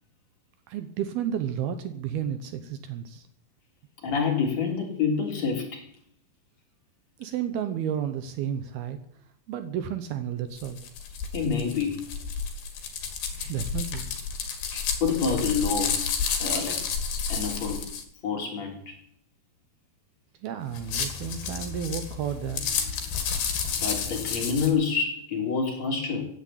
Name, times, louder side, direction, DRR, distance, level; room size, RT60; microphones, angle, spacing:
voice 1, 0.7-3.2 7.2-9.0 9.5-10.8 13.4-14.1 20.4-22.7, right 9 dB, 70° right, 10 dB, 2.7 m, -32 dB
voice 2, 4.0-5.8 11.3-12.0 14.7-16.0 16.4-16.8 17.3-17.8 18.2-18.9 23.8-26.3, left 5 dB, 40° left, 1 dB, 4.3 m, -27 dB
sound 1, 10.6-18.0 20.7-24.7, left 6 dB, 70° left, 4.0 m, -31 dB
16.0 x 10.0 x 8.7 m, 0.68 s
omnidirectional pair, 4.9 m